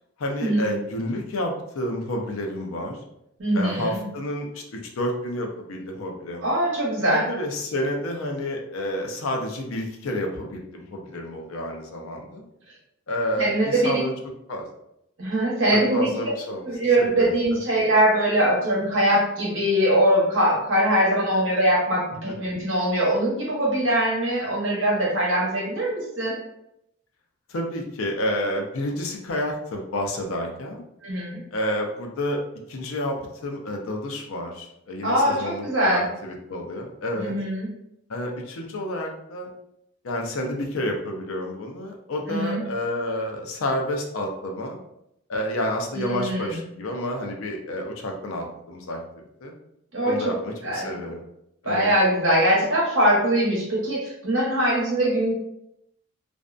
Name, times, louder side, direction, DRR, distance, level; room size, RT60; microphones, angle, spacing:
voice 1, 0.2-3.0 3.5-6.5 7.1-12.4 13.1-14.1 14.5-14.6 15.7-16.7 17.0-17.6 22.3-22.4 27.5-30.8 31.5-32.4 32.7-37.3 38.1-39.5 40.0-44.8 45.3-49.0 49.4-49.5 50.0-51.2 51.6-51.9, left 1 dB, 75° left, 1 dB, 0.5 m, -30 dB
voice 2, 3.4-4.0 6.4-7.3 13.4-14.0 15.2-16.1 16.6-26.4 31.0-31.4 35.0-36.0 37.2-37.7 42.3-42.6 45.9-46.5 49.9-50.2 50.6-50.9 51.6-55.3, right 1 dB, 60° right, -5 dB, 1.0 m, -22 dB
2.5 x 2.1 x 2.4 m, 0.79 s
head